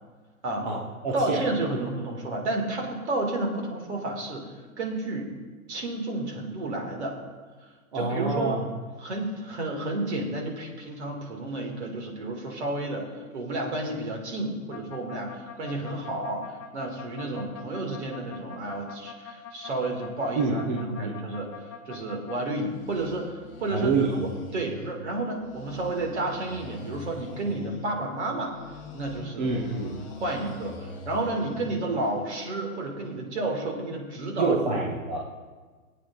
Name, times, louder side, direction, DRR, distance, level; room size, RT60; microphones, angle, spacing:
voice 1, 0.6-1.4 7.9-8.7 20.3-21.1 23.7-24.1 29.4-30.0 34.4-35.2, right 3 dB, 30° right, -3 dB, 0.9 m, -27 dB
voice 2, 1.1-5.3 5.7-7.2 7.6-8.6 9.0-13.1 13.3-28.5 28.9-29.5 30.2-34.6, right 2 dB, 50° right, 1 dB, 2.3 m, -31 dB
sound 1, 14.7-22.4 22.7-24.9 25.4-27.9 28.4-31.8, left 4 dB, 25° left, 1.2 m, -43 dB
25.0 x 8.5 x 2.5 m, 1.4 s
hypercardioid pair, 175°, 43 cm